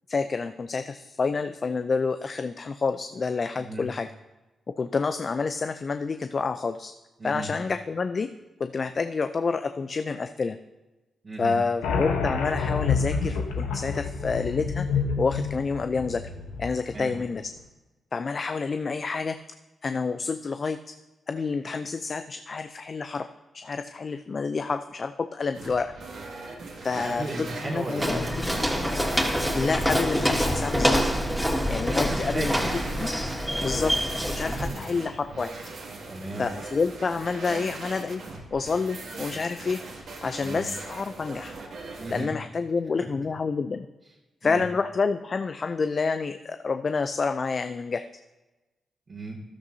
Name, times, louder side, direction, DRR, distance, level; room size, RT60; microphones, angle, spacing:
voice 1, 0.1-4.1 4.8-6.9 7.2-8.3 8.6-10.6 11.4-14.9 15.2-16.2 16.6-17.5 18.1-19.4 19.8-20.8 21.3-23.3 23.5-25.9 26.8-28.5 29.5-31.1 31.7-32.5 32.9-33.1 33.6-34.0 34.3-35.5 36.4-38.2 38.5-39.8 40.2-41.5 42.1-43.9 44.4-48.0, left 4 dB, 50° left, 10 dB, 0.4 m, -28 dB
voice 2, 11.2-11.5 16.9-17.1 26.9-28.9 31.2-31.5 31.9-32.8 34.4-34.9 36.1-36.5 40.4-40.7 42.0-42.3 44.4-44.6 49.1-49.4, right 2 dB, 45° right, -6 dB, 2.2 m, -35 dB
sound 1, 11.8-17.1, left 5 dB, 85° left, 0.9 m, -28 dB
sound 2, 25.5-42.3, right 3 dB, 70° right, 2.0 m, -40 dB
Walk footsteps, 28.0-34.7, equal, ahead, 2.4 m, -26 dB
14.0 x 12.0 x 2.7 m, 1.1 s
hypercardioid pair, 40°, 0 cm